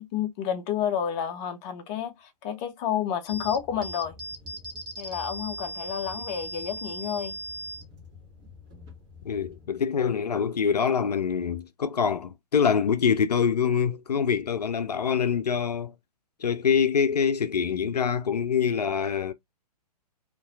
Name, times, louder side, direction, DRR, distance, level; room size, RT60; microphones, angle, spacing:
voice 1, 0.0-4.1 5.0-7.4, left 9 dB, 25° left, 0.6 m, -30 dB
sound 1, 3.3-9.7, right 1 dB, 20° right, 1.2 m, -39 dB
voice 2, 9.3-15.9 16.4-19.3, left 7 dB, 75° left, 0.4 m, -25 dB
4.0 x 2.5 x 2.3 m
figure-of-eight pair, 120°, 21 cm